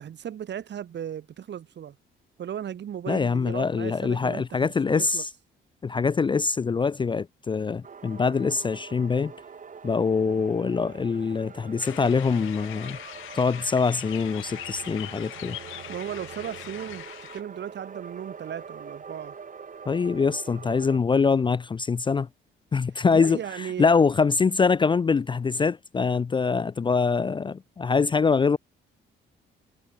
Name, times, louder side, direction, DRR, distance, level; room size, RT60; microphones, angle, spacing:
voice 1, 0.0-2.0 2.4-5.2 15.9-17.1 17.3-19.3 23.1-23.9, right 9 dB, 60° right, 4.9 m, -36 dB
voice 2, 3.1-5.3 5.8-9.3 9.8-13.0 13.3-15.6 19.9-22.3 22.7-28.6, left 5 dB, 25° left, 0.4 m, -24 dB
sound 1, 7.8-21.0, right 6 dB, 40° right, 4.9 m, -44 dB
sound 2, 11.8-17.4, left 17 dB, 85° left, 0.7 m, -41 dB
sound 3, 12.8-17.0, right 15 dB, 85° right, 3.9 m, -52 dB
cardioid pair, 90°, 20 cm